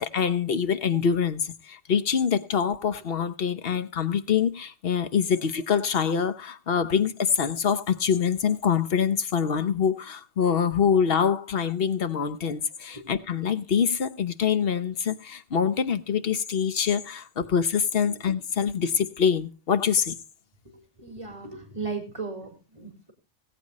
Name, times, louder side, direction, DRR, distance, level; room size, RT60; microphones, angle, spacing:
voice 1, 0.0-20.2, left 7 dB, 55° left, 1.1 m, -25 dB
voice 2, 20.6-23.1, right 4 dB, 25° right, 3.8 m, -37 dB
20.0 x 8.3 x 4.1 m
omnidirectional pair, 1.2 m